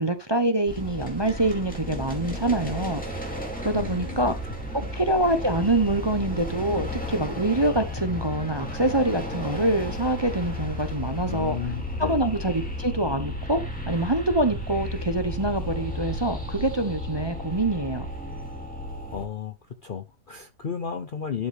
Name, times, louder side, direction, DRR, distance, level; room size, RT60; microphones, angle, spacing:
voice 1, 0.0-3.3 3.6-4.3 4.9-11.6 12.0-18.1, right 1 dB, 20° right, 0.7 m, -25 dB
sound 1, 0.7-19.3, left 1 dB, 5° left, 2.5 m, -33 dB
voice 2, 3.7-4.2 11.3-12.2 19.1-19.6 19.8-21.5, left 7 dB, 50° left, 0.7 m, -33 dB
11.5 x 5.2 x 3.5 m
omnidirectional pair, 1.6 m